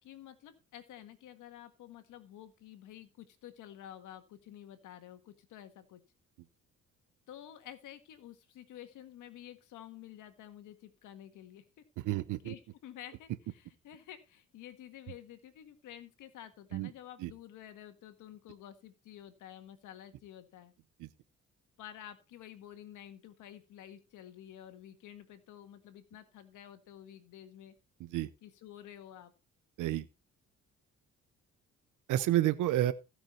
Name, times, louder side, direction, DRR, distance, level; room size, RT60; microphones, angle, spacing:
voice 1, 0.0-6.0 7.3-11.6 12.4-20.7 21.8-27.7 28.4-29.3, left 11 dB, 85° left, 1.8 m, -51 dB
voice 2, 12.0-12.5 16.7-16.9 17.2-17.3 21.0-21.1 28.0-28.3 29.8-30.1 32.1-32.9, right 14 dB, 85° right, 0.9 m, -30 dB
15.5 x 6.1 x 4.4 m
cardioid pair, 90°, 30 cm